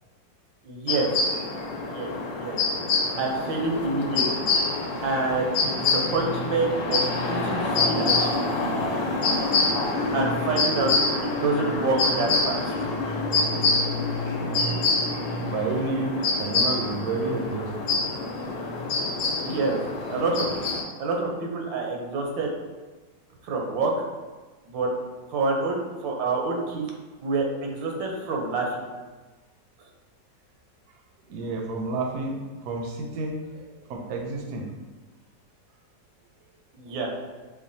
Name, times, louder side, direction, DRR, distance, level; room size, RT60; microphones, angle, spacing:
voice 1, 0.6-1.1 1.9-2.1 2.4-2.6 3.2-4.4 5.0-7.0 7.3-8.3 10.1-10.9 11.2-12.6 19.3-19.8 20.1-20.7 21.0-22.5 23.4-23.9 24.7-24.9 25.3-26.8 27.2-28.7 36.7-37.1, right 3 dB, 90° right, 0 dB, 1.4 m, -27 dB
sound 1, 0.9-20.8, left 3 dB, 85° left, 1.3 m, -26 dB
voice 2, 15.5-17.9 31.3-34.7, right 3 dB, 70° right, 2 dB, 1.0 m, -30 dB
5.7 x 2.2 x 2.6 m, 1.3 s
omnidirectional pair, 2.0 m